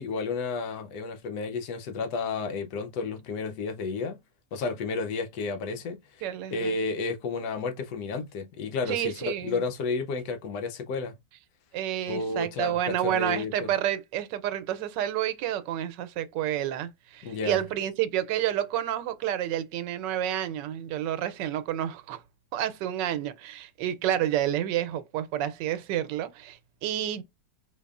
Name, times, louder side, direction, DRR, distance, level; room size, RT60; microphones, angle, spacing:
voice 1, 0.0-4.2 4.5-6.0 6.5-11.1 12.1-13.7 17.2-17.6, left 4 dB, 75° left, 1.2 m, -32 dB
voice 2, 6.2-6.7 8.9-9.6 11.7-22.2 22.5-27.2, right 11 dB, 85° right, 1.2 m, -29 dB
4.6 x 2.7 x 2.3 m
omnidirectional pair, 1.9 m